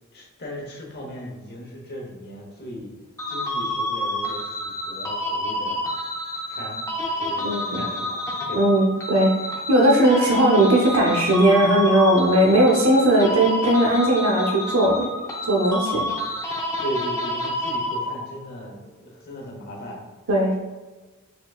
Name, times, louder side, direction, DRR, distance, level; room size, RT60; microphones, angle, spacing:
voice 1, 0.1-2.9 3.3-5.8 6.5-6.9 7.2-8.2 8.5-8.7 16.8-20.0, equal, 50° left, 0 dB, 0.9 m, -36 dB
sound 1, 3.2-18.4, left 1 dB, 15° left, 0.5 m, -29 dB
voice 2, 7.4-7.8 8.5-15.1 15.4-16.1 20.3-20.5, right 1 dB, 75° right, -2 dB, 0.7 m, -18 dB
4.6 x 3.7 x 2.4 m, 1.3 s
head